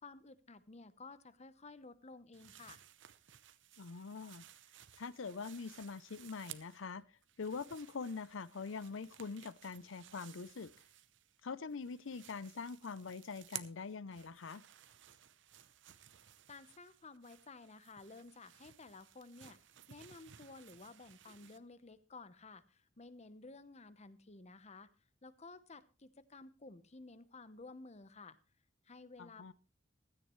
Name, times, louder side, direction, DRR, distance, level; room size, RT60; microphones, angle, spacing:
voice 1, 0.0-2.8 16.5-19.6 19.9-24.9 25.2-28.4 28.8-29.5, left 3 dB, 35° left, 0.9 m, -54 dB
Cloth - rustle - heavy - snap - clothespin, 2.3-6.9 7.2-11.4 11.7-21.6, right 12 dB, 65° right, 0.7 m, -56 dB
voice 2, 3.8-4.4 5.0-7.0 7.4-10.7 11.4-14.6 29.2-29.5, left 4 dB, 75° left, 0.6 m, -44 dB
16.0 x 13.5 x 3.2 m
head